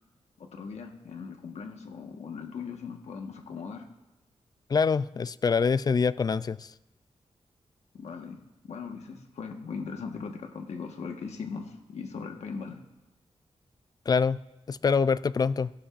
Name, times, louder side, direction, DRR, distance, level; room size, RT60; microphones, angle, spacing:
voice 1, 0.4-3.9 7.9-8.4 8.6-12.8, left 5 dB, 80° left, 4 dB, 1.3 m, -39 dB
voice 2, 4.7-6.7 14.1-14.4 14.7-15.7, left 5 dB, 35° left, 16 dB, 0.3 m, -25 dB
17.0 x 11.5 x 2.5 m, 1.0 s
wide cardioid pair, 100°, 11 cm